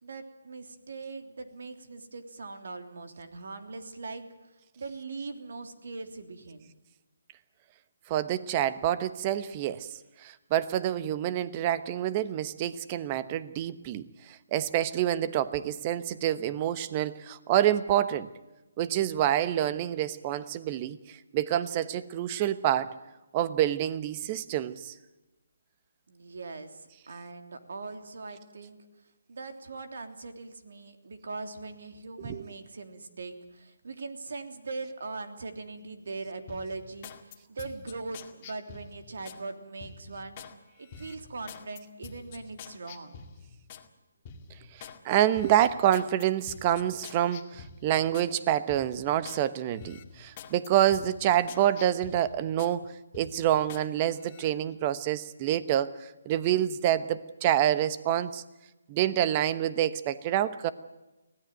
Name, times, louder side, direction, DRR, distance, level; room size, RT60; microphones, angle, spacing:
voice 1, 0.0-6.7 26.1-28.8 29.3-40.4 40.8-43.2, right 3 dB, 70° right, 7 dB, 3.2 m, -41 dB
voice 2, 8.1-9.9 10.2-18.3 18.8-21.0 21.3-22.9 23.3-24.9 32.2-32.4 45.0-52.8 53.1-55.9 56.2-58.4 58.9-60.7, right 11 dB, 25° right, 14 dB, 1.1 m, -27 dB
sound 1, 36.5-39.4 39.8-40.5 40.9-43.9 44.3-45.0 45.3-48.3 48.7-49.4 49.8-52.8 53.1-53.9 54.2-54.5, left 6 dB, 30° left, 2.1 m, -47 dB
25.0 x 17.5 x 9.1 m, 1.1 s
hypercardioid pair, 160°, 0 cm